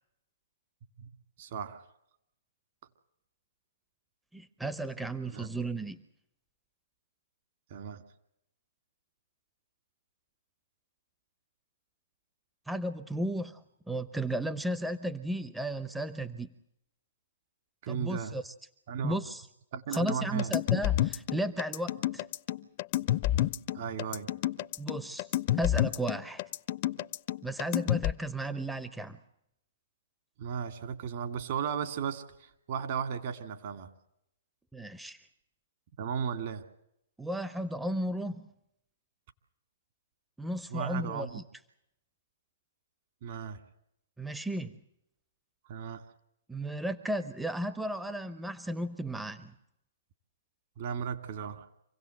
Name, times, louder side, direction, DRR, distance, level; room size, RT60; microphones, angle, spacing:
voice 1, 1.4-1.8 5.3-5.5 7.7-8.0 17.8-18.3 18.9-19.2 19.7-20.5 23.7-24.3 30.4-33.9 36.0-36.6 40.7-41.4 43.2-43.6 45.7-46.0 50.8-51.6, right 7 dB, 50° right, 8 dB, 2.3 m, -35 dB
voice 2, 4.3-6.0 12.7-16.5 17.9-18.5 19.0-19.5 19.9-22.3 24.8-25.3 25.6-26.4 27.4-29.2 34.7-35.3 37.2-38.5 40.4-41.4 44.2-44.8 46.5-49.5, right 1 dB, 5° right, 11 dB, 0.8 m, -34 dB
sound 1, 19.9-28.1, left 14 dB, 45° left, 0.8 m, -29 dB
26.5 x 17.0 x 7.9 m, 0.80 s
hypercardioid pair, 130°, 0 cm